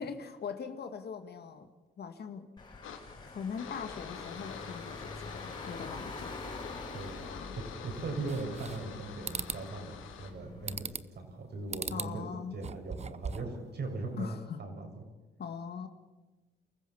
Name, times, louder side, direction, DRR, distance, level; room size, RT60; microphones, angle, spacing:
voice 1, 0.0-1.7 2.0-2.8 3.2-6.3 7.2-7.6 11.9-12.6 14.2-14.6 15.4-15.9, left 6 dB, 55° left, 7 dB, 2.1 m, -41 dB
Car / Engine, 2.6-10.8, left 3 dB, 25° left, 6.7 m, -46 dB
sound 1, 2.8-10.3, left 7 dB, 85° left, 2.5 m, -47 dB
voice 2, 6.9-7.3 7.8-12.3 12.5-14.9, right 3 dB, 55° right, 4 dB, 6.5 m, -39 dB
sound 2, 8.3-8.9 9.3-9.6 10.7-11.2 11.7-12.1 12.5-13.6, right 5 dB, 35° right, 0.9 m, -38 dB
29.0 x 15.0 x 7.2 m, 1.2 s
cardioid pair, 90°, 20 cm